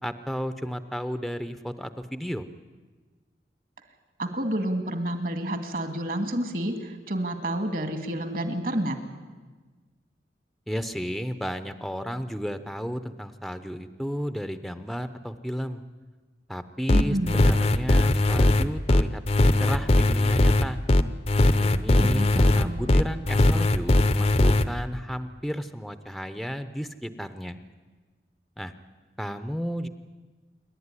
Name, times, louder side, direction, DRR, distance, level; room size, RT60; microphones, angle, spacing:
voice 1, 0.0-2.5 10.7-15.8 16.5-19.2 19.6-20.8 21.5-27.6 28.6-28.7 29.2-29.9, equal, ahead, 10 dB, 0.7 m, -33 dB
voice 2, 4.2-9.0 16.9-17.5 22.0-22.9, right 1 dB, 50° right, 7 dB, 2.2 m, -29 dB
sound 1, 16.9-24.6, left 2 dB, 35° left, 0.7 m, -19 dB
28.0 x 12.0 x 9.8 m, 1.4 s
head